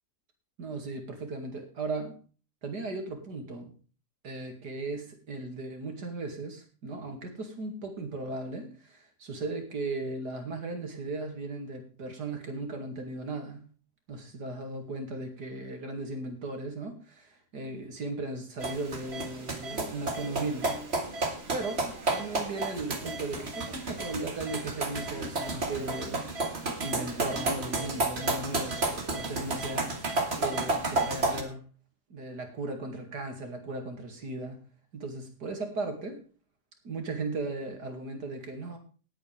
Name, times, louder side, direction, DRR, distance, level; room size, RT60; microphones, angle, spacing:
voice 1, 0.6-2.2 2.6-3.7 4.2-13.6 14.1-17.0 17.5-20.8 21.5-26.3 26.6-31.6 32.1-34.6 34.9-36.2 36.8-38.8, right 2 dB, 75° right, 4 dB, 3.0 m, -37 dB
sound 1, 18.6-31.4, right 2 dB, 40° right, 2.0 m, -32 dB
18.5 x 8.7 x 3.5 m, 0.38 s
omnidirectional pair, 1.8 m